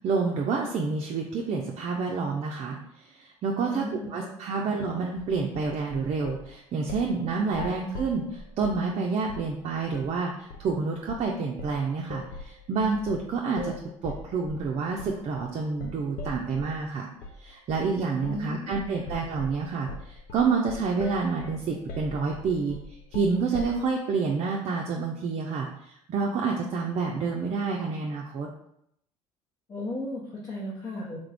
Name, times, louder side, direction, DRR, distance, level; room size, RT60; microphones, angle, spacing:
voice 1, 0.0-2.8 3.1-3.8 4.1-13.7 14.0-17.1 17.4-22.8 23.1-28.5, right 4 dB, 45° right, 0 dB, 0.5 m, -28 dB
voice 2, 3.6-4.7 18.2-18.8 29.7-31.2, left 1 dB, 35° left, -5 dB, 1.0 m, -36 dB
sound 1, 5.2-6.5 6.9-7.2 7.5-8.9 9.3-9.5 9.9-10.1 10.5-10.7 11.1-11.3 11.6-16.8 17.2-17.4 17.7-18.0 18.2-18.5 18.7-23.9, left 3 dB, 70° left, 0.6 m, -40 dB
3.6 x 2.4 x 3.4 m, 0.75 s
supercardioid pair, 75°, 15 cm